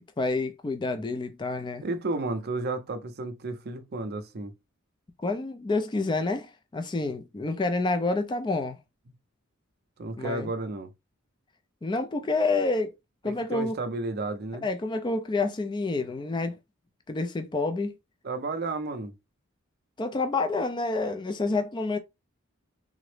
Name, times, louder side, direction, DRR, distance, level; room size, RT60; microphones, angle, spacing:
voice 1, 0.0-1.8 5.2-8.8 10.2-10.5 11.8-12.9 13.2-13.7 14.6-16.6 17.1-18.0 20.0-22.0, left 3 dB, 20° left, 0.3 m, -28 dB
voice 2, 1.8-4.5 10.0-10.9 13.2-14.7 18.2-19.1, right 2 dB, 50° right, 0.5 m, -32 dB
3.7 x 2.0 x 3.1 m
head